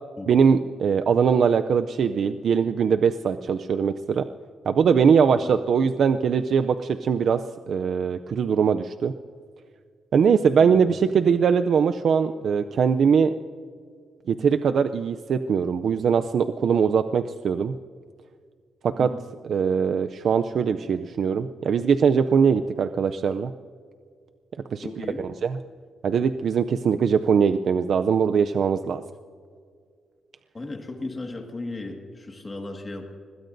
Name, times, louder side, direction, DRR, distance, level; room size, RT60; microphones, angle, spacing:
voice 1, 0.3-4.3 4.7-7.4 7.7-9.1 10.1-13.3 14.3-17.7 18.8-19.1 19.5-23.5 24.7-25.1 25.4-25.6 26.0-29.0, right 6 dB, 55° right, 9 dB, 0.4 m, -21 dB
voice 2, 10.5-10.9 19.0-19.2 24.8-25.2 30.5-33.2, left 2 dB, 20° left, 3 dB, 1.8 m, -36 dB
25.0 x 20.5 x 2.6 m, 2.1 s
wide cardioid pair, 165°, 0 cm